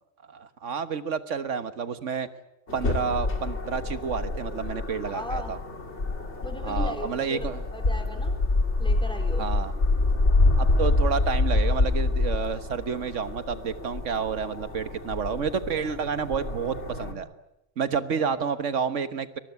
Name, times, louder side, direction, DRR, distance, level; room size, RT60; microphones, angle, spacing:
voice 1, 0.3-2.3 2.7-5.6 6.6-7.6 9.4-9.7 10.6-17.3 17.8-19.4, right 6 dB, 85° right, 11 dB, 1.6 m, -30 dB
sound 1, 2.7-17.1, left 2 dB, 70° left, 3.0 m, -26 dB
voice 2, 5.1-5.6 6.4-7.4 7.7-8.3 8.8-9.5, equal, 5° left, 5 dB, 3.7 m, -36 dB
23.0 x 20.5 x 9.4 m, 0.90 s
omnidirectional pair, 1.2 m